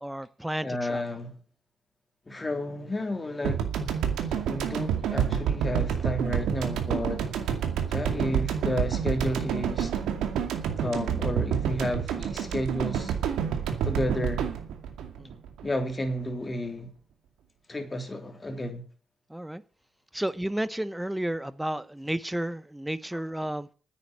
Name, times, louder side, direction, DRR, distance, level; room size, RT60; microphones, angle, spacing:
voice 1, 0.0-1.0 8.3-8.4 15.2-15.3 19.3-19.6 20.1-23.7, right 1 dB, 5° right, 0.9 m, -32 dB
voice 2, 0.6-1.4 2.3-3.7 4.5-7.3 7.9-9.9 10.8-13.1 13.8-14.5 15.6-16.9 17.7-18.8, left 1 dB, 20° left, 3.3 m, -31 dB
sound 1, 3.5-15.9, right 8 dB, 85° right, 2.3 m, -28 dB
9.9 x 8.7 x 9.9 m
cardioid pair, 90°, 0 cm